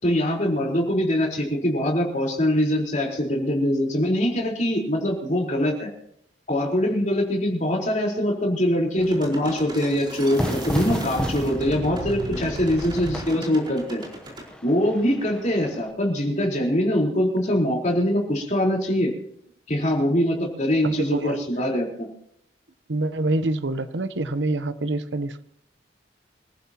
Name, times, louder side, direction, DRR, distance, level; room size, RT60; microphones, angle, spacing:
voice 1, 0.0-5.9 6.5-14.0 14.6-19.1 19.7-22.1, equal, 40° left, -1 dB, 4.2 m, -23 dB
sound 1, 9.0-14.5, right 1 dB, 25° right, 4.7 m, -34 dB
Fire / Fireworks, 10.4-15.9, equal, 5° left, 1.0 m, -33 dB
voice 2, 20.8-21.4 22.9-25.4, right 2 dB, 85° right, 12 dB, 0.9 m, -26 dB
26.5 x 15.0 x 3.0 m, 0.71 s
head